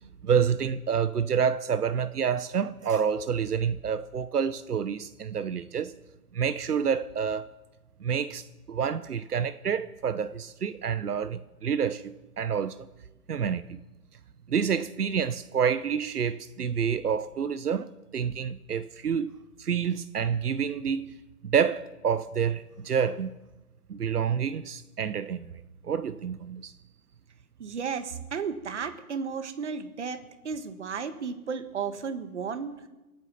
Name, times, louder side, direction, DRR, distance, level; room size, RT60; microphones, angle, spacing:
voice 1, 0.2-5.9 6.3-7.5 8.0-12.8 13.3-13.8 14.5-23.3 23.9-25.5 25.8-26.7, right 7 dB, 85° right, 0.9 m, -28 dB
voice 2, 27.6-32.7, right 6 dB, 50° right, 1.6 m, -34 dB
26.5 x 9.0 x 5.8 m
hypercardioid pair, 165°, 45 cm